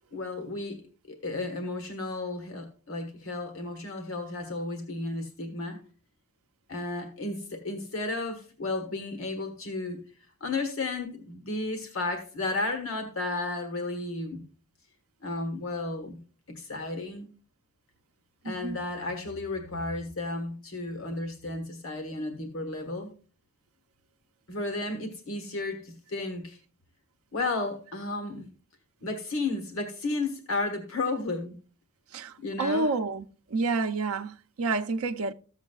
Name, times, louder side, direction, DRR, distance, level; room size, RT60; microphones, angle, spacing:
voice 1, 0.1-0.8 1.1-5.8 6.7-10.0 10.4-14.4 15.2-16.2 16.5-17.3 18.4-23.1 24.5-26.6 27.3-28.5 29.0-31.6 32.4-32.9, left 2 dB, 65° left, 1.4 m, -33 dB
voice 2, 18.4-18.8 32.1-33.3 33.5-35.3, right 3 dB, 75° right, 0.5 m, -29 dB
14.0 x 7.2 x 2.3 m
head